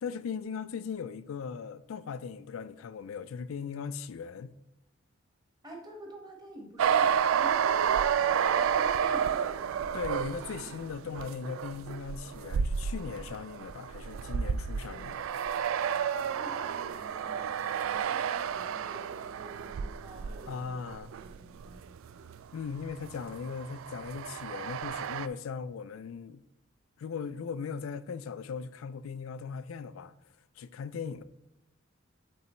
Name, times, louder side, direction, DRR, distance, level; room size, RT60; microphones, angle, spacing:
voice 1, 0.0-4.5 9.9-15.3 20.5-21.1 22.5-26.4 27.0-30.1 30.6-31.2, left 6 dB, 80° left, 0.4 m, -38 dB
voice 2, 5.6-7.7 8.4-9.9 16.1-20.9 21.2-22.2, right 1 dB, 20° right, 1.3 m, -48 dB
sound 1, 6.8-22.4 22.7-25.3, right 7 dB, 75° right, 0.3 m, -31 dB
8.1 x 3.9 x 4.3 m
head